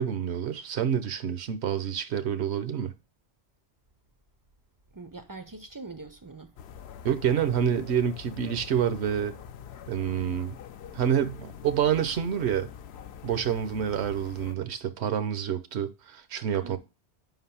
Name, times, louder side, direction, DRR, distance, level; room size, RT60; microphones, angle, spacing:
voice 1, 0.0-2.9 7.0-9.3 9.9-10.6 10.9-12.7 13.2-16.8, right 9 dB, 80° right, 0.9 m, -28 dB
voice 2, 4.9-6.5 16.5-16.8, right 3 dB, 30° right, 0.3 m, -43 dB
sound 1, 6.6-14.6, left 8 dB, 75° left, 0.8 m, -44 dB
5.2 x 4.0 x 5.5 m
omnidirectional pair, 1.1 m